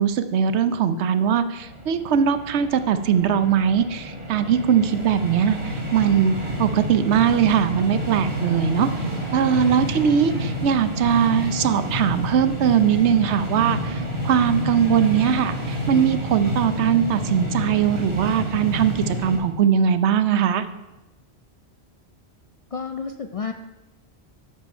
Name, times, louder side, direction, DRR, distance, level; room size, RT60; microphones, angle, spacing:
voice 1, 0.0-6.3 6.6-8.9 9.3-20.6, right 8 dB, 85° right, 11 dB, 1.0 m, -20 dB
sound 1, 1.6-19.4, equal, 35° right, 2.9 m, -29 dB
voice 2, 22.7-23.5, left 5 dB, 60° left, 7 dB, 0.3 m, -30 dB
12.5 x 5.0 x 5.5 m, 1.1 s
omnidirectional pair, 1.1 m